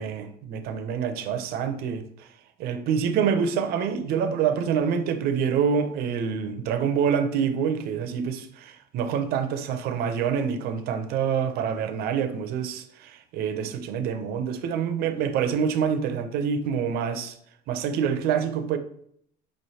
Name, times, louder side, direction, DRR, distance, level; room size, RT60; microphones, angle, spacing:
voice 1, 0.0-2.3 2.6-17.3 17.7-18.8, right 7 dB, 50° right, 0.5 m, -26 dB
5.0 x 3.1 x 2.7 m
cardioid pair, 155°, 20 cm